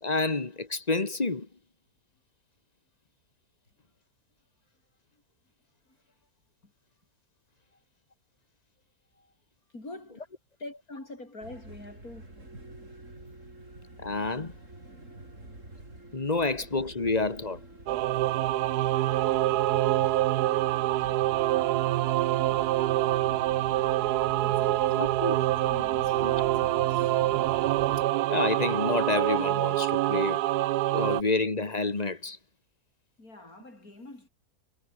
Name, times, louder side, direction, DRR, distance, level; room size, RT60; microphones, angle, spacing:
voice 1, 0.0-1.5 14.0-14.5 16.1-17.6 25.0-25.3 26.2-26.3 28.3-30.4 30.9-32.4, left 3 dB, 25° left, 1.7 m, -28 dB
voice 2, 9.7-10.3 10.6-12.4 18.1-18.5 19.3-19.5 24.4-25.1 25.4-27.2 33.2-34.3, left 2 dB, 65° left, 7.8 m, -46 dB
sound 1, 11.4-28.1, right 2 dB, 50° right, 7.4 m, -46 dB
Singing / Musical instrument, 17.9-31.2, right 15 dB, 80° right, 1.2 m, -26 dB
omnidirectional pair, 1.7 m